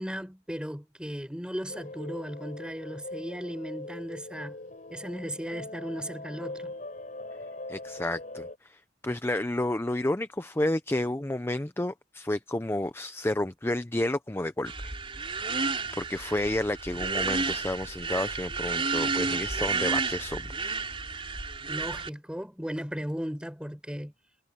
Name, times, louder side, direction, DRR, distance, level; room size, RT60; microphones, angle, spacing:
voice 1, 0.0-4.6 4.9-6.7 21.7-24.1, equal, 5° right, 4.5 m, -36 dB
sound 1, 1.7-8.6, left 2 dB, 45° left, 4.3 m, -41 dB
voice 2, 7.7-20.8, left 1 dB, 15° left, 0.6 m, -31 dB
sound 2, 14.7-22.1, right 4 dB, 30° right, 4.2 m, -31 dB
head